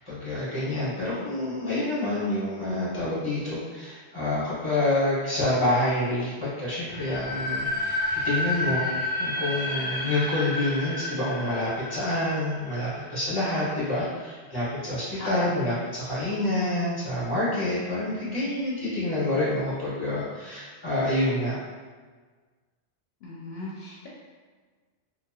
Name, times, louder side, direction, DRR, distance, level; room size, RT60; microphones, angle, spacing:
voice 1, 0.1-8.9 9.2-21.6, left 1 dB, 25° left, -10 dB, 0.9 m, -27 dB
sound 1, 6.9-13.7, left 1 dB, 55° right, 1.2 m, -31 dB
voice 2, 15.2-15.5 23.2-24.1, left 1 dB, 75° left, -6 dB, 0.8 m, -37 dB
2.8 x 2.4 x 2.3 m, 1.5 s
omnidirectional pair, 1.1 m